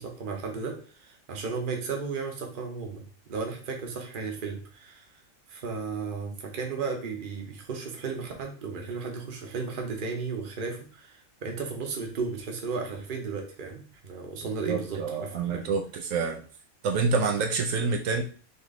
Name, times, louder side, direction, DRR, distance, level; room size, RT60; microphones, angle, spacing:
voice 1, 0.0-5.1 5.5-15.6, right 4 dB, 45° right, 3 dB, 0.9 m, -34 dB
voice 2, 14.7-16.4 16.8-18.2, right 4 dB, 80° right, 4 dB, 1.0 m, -27 dB
4.0 x 3.0 x 3.7 m, 0.41 s
omnidirectional pair, 1.4 m